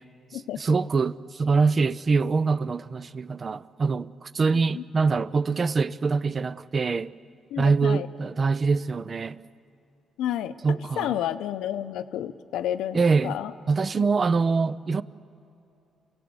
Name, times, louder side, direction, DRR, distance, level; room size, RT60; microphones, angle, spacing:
voice 1, 0.6-7.1 7.6-9.4 10.6-11.2 12.9-13.4 13.7-15.0, right 4 dB, 40° right, 0.5 m, -24 dB
voice 2, 7.5-8.1 10.2-13.5, left 11 dB, 90° left, 0.7 m, -31 dB
28.0 x 17.0 x 7.9 m
cardioid pair, 90°, 0 cm